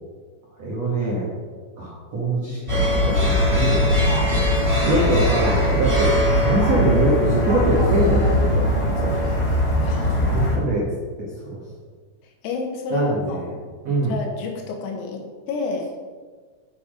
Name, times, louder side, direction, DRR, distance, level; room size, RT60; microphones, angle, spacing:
voice 1, 0.6-1.3 1.8-4.5 4.8-9.2 10.2-10.9 11.2-11.6 12.9-13.5 13.8-14.2, right 2 dB, 70° right, -6 dB, 1.5 m, -24 dB
sound 1, 2.7-10.5, left 1 dB, 40° right, 0.4 m, -20 dB
voice 2, 6.5-6.9 9.8-10.5 12.4-13.5 14.0-15.9, left 4 dB, 85° left, 3 dB, 3.9 m, -30 dB
8.5 x 7.0 x 5.2 m, 1.5 s
omnidirectional pair, 5.9 m